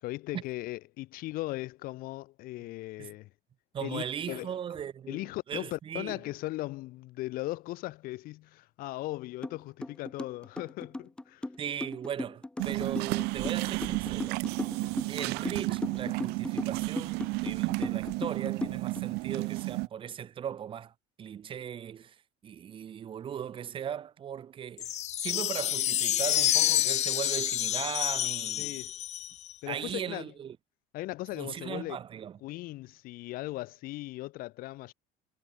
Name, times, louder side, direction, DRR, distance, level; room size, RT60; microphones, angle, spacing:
voice 1, 0.0-3.3 3.8-4.5 5.1-11.5 28.6-28.9 29.6-30.3 30.9-32.0 32.4-34.9, left 18 dB, 55° left, 5.1 m, -38 dB
voice 2, 3.7-6.2 11.6-14.4 15.1-28.8 29.7-30.6 31.3-32.4, right 9 dB, 30° right, 6.4 m, -38 dB
sound 1, 9.4-9.6 9.8-19.0, left 2 dB, 5° left, 1.6 m, -37 dB
sound 2, 12.6-19.9, right 25 dB, 70° right, 2.9 m, -32 dB
sound 3, 24.8-29.5, left 13 dB, 40° left, 2.2 m, -28 dB
cardioid pair, 170°, 18 cm